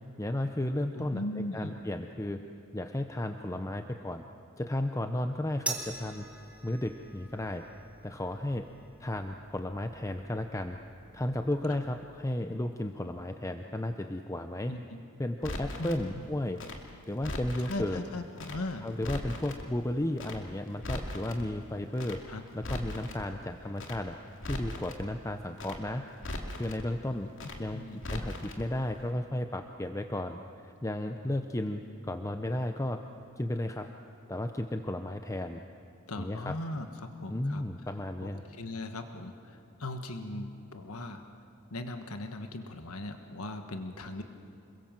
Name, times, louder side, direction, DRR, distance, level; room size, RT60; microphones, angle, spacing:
voice 1, 0.2-2.4 2.7-4.2 4.6-6.3 6.6-7.7 8.0-8.7 9.0-10.8 11.1-14.7 15.2-16.6 17.1-18.0 18.8-22.2 22.5-24.2 24.5-26.1 26.5-27.3 27.6-33.0 33.4-33.9 34.3-35.6 36.2-36.6 37.3-38.4, left 1 dB, 15° left, 6 dB, 0.7 m, -34 dB
voice 2, 0.9-1.8 14.7-15.0 15.8-16.2 17.7-18.9 22.3-22.4 27.7-28.0 36.1-37.6 38.2-38.3 38.6-41.2 41.7-44.2, left 2 dB, 80° left, 6 dB, 1.4 m, -38 dB
sound 1, 5.7-12.2, right 2 dB, 5° right, 2.9 m, -44 dB
Crackle, 15.4-16.0 16.6-17.8 18.4-18.6 18.9-19.6 20.2-20.4 20.7-21.4 22.0-22.2 22.5-23.2 23.8-24.0 24.3-25.0 25.6-25.8 26.1-26.8 27.4-27.6 27.9-28.6 28.9-29.0, left 1 dB, 60° left, 2.6 m, -39 dB
28.0 x 22.0 x 7.6 m, 2.6 s
head